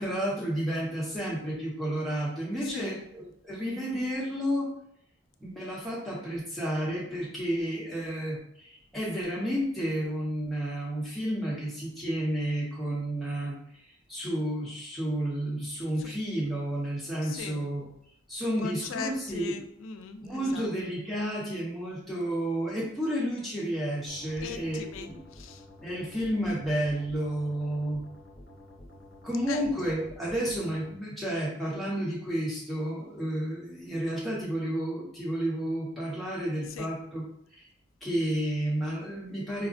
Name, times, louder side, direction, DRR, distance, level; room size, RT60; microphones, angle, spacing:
voice 1, 0.0-4.7 5.4-13.6 13.8-17.9 18.3-19.5 20.2-25.2 25.8-28.0 29.2-37.2 37.5-37.7 38.0-39.7, right 1 dB, ahead, -6 dB, 0.8 m, -31 dB
voice 2, 2.6-3.1 16.0-16.1 17.2-17.7 18.3-20.7 24.4-25.6 29.5-29.6 36.7-36.9, left 5 dB, 75° left, 7 dB, 0.3 m, -40 dB
sound 1, 24.1-30.9, left 1 dB, 55° left, 0.8 m, -50 dB
4.8 x 2.1 x 2.5 m, 0.71 s
head